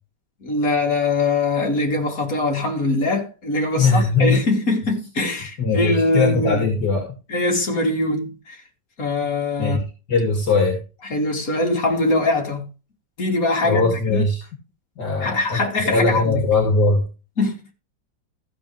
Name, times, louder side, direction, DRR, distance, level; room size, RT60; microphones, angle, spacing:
voice 1, 0.4-6.7 7.3-8.6 9.0-9.8 11.0-12.7 13.2-14.3 15.2-16.4 17.4-17.6, left 2 dB, 50° left, 3.5 m, -22 dB
voice 2, 3.8-4.4 5.6-7.1 9.6-10.8 13.6-14.4 15.0-15.6 15.9-17.1, left 3 dB, 65° left, 2.9 m, -20 dB
15.0 x 7.7 x 3.3 m
omnidirectional pair, 1.9 m